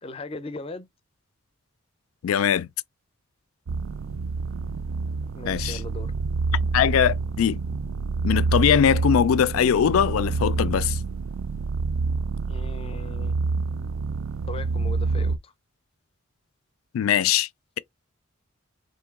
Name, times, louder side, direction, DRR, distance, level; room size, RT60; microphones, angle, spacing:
voice 1, 0.0-0.9 5.3-6.1 12.5-13.4 14.5-15.5, left 2 dB, 30° left, 0.4 m, -38 dB
voice 2, 2.2-2.7 5.4-5.8 6.7-7.6 8.2-11.0 16.9-17.5, left 8 dB, 90° left, 0.3 m, -21 dB
sound 1, 3.7-15.4, right 4 dB, 75° right, 0.4 m, -27 dB
3.8 x 2.6 x 3.5 m
head